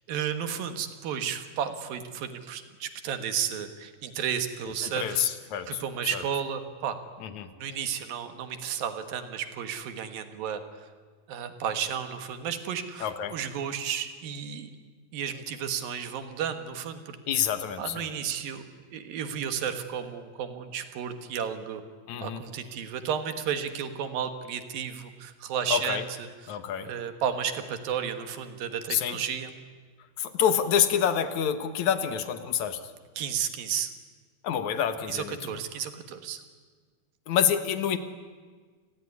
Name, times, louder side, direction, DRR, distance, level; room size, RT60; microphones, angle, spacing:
voice 1, 0.0-5.2 5.7-7.0 7.6-10.9 11.3-14.7 15.1-17.2 17.8-18.6 18.9-21.8 22.2-26.6 26.8-29.5 33.2-33.9 35.1-36.4, right 8 dB, 75° right, 8 dB, 3.2 m, -33 dB
voice 2, 4.8-5.8 6.1-6.2 7.2-7.5 13.0-13.4 17.3-18.1 22.1-22.4 25.7-26.0 26.5-26.9 28.9-29.2 30.2-32.8 34.4-35.4 37.3-38.0, left 8 dB, 60° left, 9 dB, 2.5 m, -27 dB
29.0 x 20.0 x 9.6 m, 1.5 s
omnidirectional pair, 4.2 m